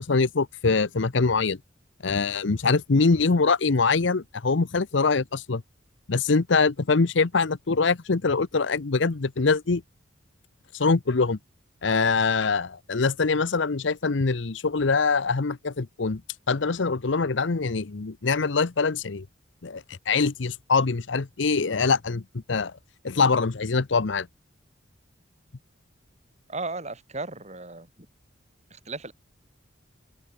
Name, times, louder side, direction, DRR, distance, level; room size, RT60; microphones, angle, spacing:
voice 1, 0.0-1.6 2.0-5.6 6.1-9.8 10.7-11.4 11.8-16.2 16.5-19.3 19.6-22.2 22.5-22.7 23.0-24.3, left 4 dB, 70° left, 0.8 m, -23 dB
voice 2, 26.5-27.9 28.7-29.1, right 3 dB, 35° right, 6.4 m, -35 dB
open air
head